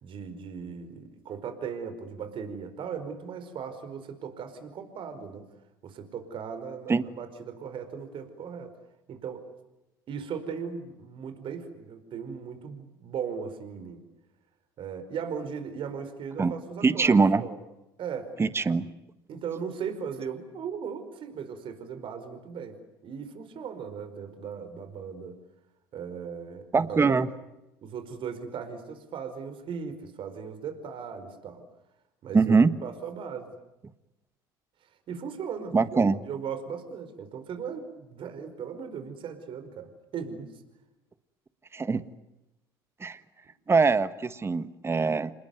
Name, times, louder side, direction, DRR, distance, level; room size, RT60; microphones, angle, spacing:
voice 1, 0.0-5.5 5.8-8.7 9.1-9.4 10.1-14.0 14.8-17.5 18.0-18.3 18.7-18.8 19.3-25.4 25.9-27.2 27.8-31.6 32.2-33.5 35.1-40.5, right 6 dB, 50° right, 9 dB, 4.8 m, -38 dB
voice 2, 16.8-17.4 18.4-18.9 26.7-27.3 32.3-32.7 35.7-36.2 41.7-42.0 43.0-43.2 43.7-45.3, right 4 dB, 25° right, 14 dB, 1.4 m, -22 dB
27.5 x 20.5 x 9.5 m, 0.95 s
hypercardioid pair, 70°, 11 cm